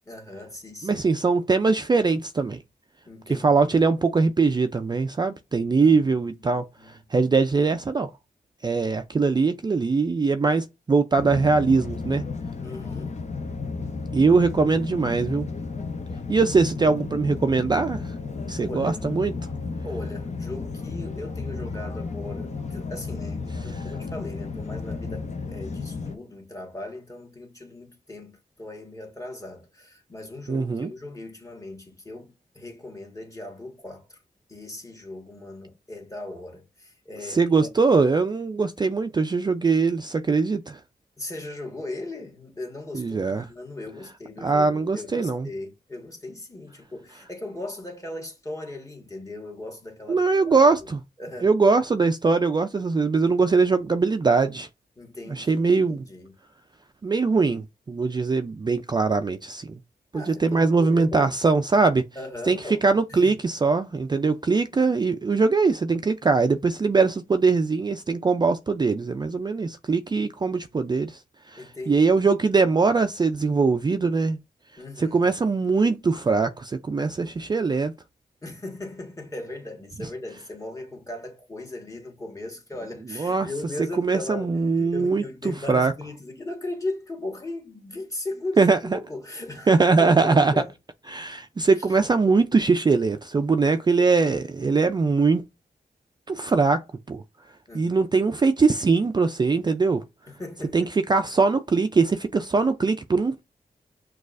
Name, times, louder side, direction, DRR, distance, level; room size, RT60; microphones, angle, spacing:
voice 1, 0.1-1.1 3.0-3.8 5.8-7.0 12.6-13.1 18.5-19.3 19.8-34.2 34.5-37.7 41.2-50.7 51.2-51.5 55.0-56.3 60.1-61.3 62.1-63.4 71.6-72.2 74.8-75.3 78.4-90.7 91.8-92.0 97.7-98.0 100.3-100.9, left 2 dB, 20° left, 1.5 m, -38 dB
voice 2, 0.8-2.6 3.3-8.1 8.6-12.2 14.1-15.5 16.3-18.1 18.5-19.3 30.5-30.9 37.2-40.8 42.9-43.5 44.4-45.5 50.1-51.0 51.4-54.7 55.3-56.0 57.0-59.8 60.1-62.0 62.5-62.6 62.8-71.2 71.5-74.4 75.0-77.9 83.2-83.5 84.0-85.9 88.6-88.8 89.7-90.5 91.1-95.4 96.3-96.8 97.1-97.2 97.7-100.0 100.7-103.4, right 4 dB, 25° right, 0.4 m, -22 dB
sound 1, 11.2-26.2, left 4 dB, 45° left, 0.7 m, -33 dB
6.2 x 2.4 x 2.5 m
cardioid pair, 60°, 16 cm